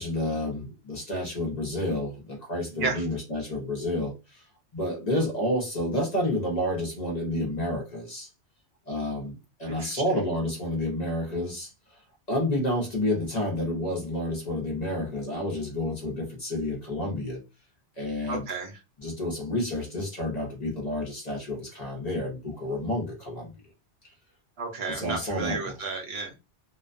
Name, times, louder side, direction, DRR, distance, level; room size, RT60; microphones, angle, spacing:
voice 1, 0.0-4.4 4.7-8.3 8.9-11.7 12.3-17.4 18.0-18.5 19.0-23.5 24.9-25.7, left 1 dB, 40° left, 0.7 m, -30 dB
voice 2, 2.7-3.0 9.7-10.0 18.3-18.8 24.6-26.3, right 4 dB, 65° right, 0.8 m, -32 dB
2.4 x 2.2 x 2.4 m
omnidirectional pair, 1.2 m